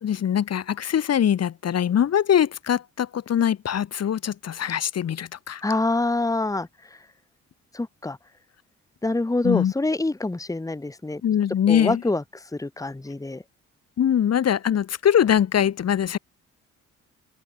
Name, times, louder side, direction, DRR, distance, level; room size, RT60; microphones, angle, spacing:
voice 1, 0.0-5.6 9.4-9.7 11.2-12.0 14.0-16.2, left 9 dB, 55° left, 2.3 m, -22 dB
voice 2, 5.6-6.7 7.7-8.2 9.0-11.2 11.7-12.2 12.5-13.4, left 2 dB, 10° left, 1.7 m, -25 dB
open air
cardioid pair, 90°, 30 cm